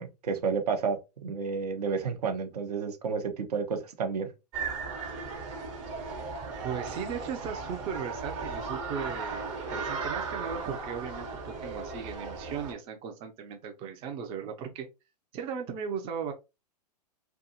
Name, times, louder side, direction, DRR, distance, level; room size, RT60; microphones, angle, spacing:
voice 1, 0.0-4.3, right 5 dB, 70° right, 0.7 m, -31 dB
sound 1, 4.5-12.7, right 4 dB, 45° right, 1.1 m, -36 dB
voice 2, 6.6-14.9 15.3-16.3, right 7 dB, 25° right, 0.4 m, -37 dB
2.6 x 2.3 x 2.7 m
hypercardioid pair, 110°, 21 cm